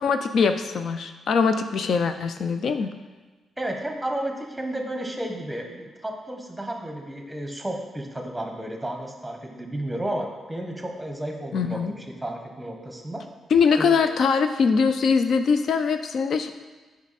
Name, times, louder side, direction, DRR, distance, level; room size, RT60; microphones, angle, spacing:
voice 1, 0.0-2.9 11.5-11.9 13.5-16.5, left 5 dB, 60° left, 8 dB, 0.4 m, -22 dB
voice 2, 3.6-13.2 13.8-14.0, right 1 dB, 10° right, 3 dB, 1.1 m, -32 dB
8.1 x 5.2 x 4.1 m, 1.3 s
cardioid pair, 105°, 0 cm